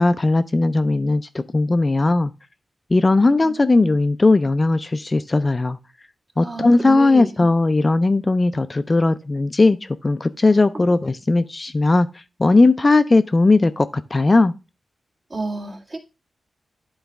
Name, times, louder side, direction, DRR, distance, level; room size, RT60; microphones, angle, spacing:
voice 1, 0.0-2.3 2.9-5.8 6.4-12.1 12.4-14.5, left 2 dB, 30° left, 0.3 m, -17 dB
voice 2, 3.4-3.9 6.4-7.3 10.7-10.8 15.3-16.0, right 3 dB, 40° right, 1.6 m, -31 dB
10.0 x 4.0 x 3.4 m
wide cardioid pair, 95°, 0 cm